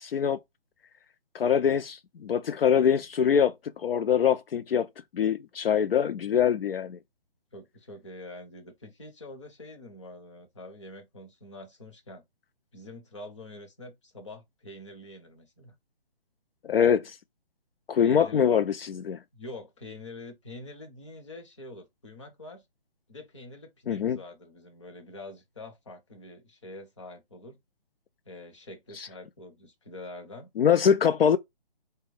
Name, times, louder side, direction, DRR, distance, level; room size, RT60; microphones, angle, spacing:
voice 1, 1.3-4.9 5.1-7.0 16.7-17.2 17.9-19.2 23.9-24.2 28.9-29.1 30.6-31.4, left 8 dB, 70° left, 0.4 m, -24 dB
voice 2, 7.5-12.2 12.7-15.7 18.0-18.5 19.3-22.6 23.1-27.6 28.3-30.5, left 2 dB, 30° left, 0.7 m, -45 dB
4.0 x 2.2 x 3.3 m
hypercardioid pair, 175°, 30 cm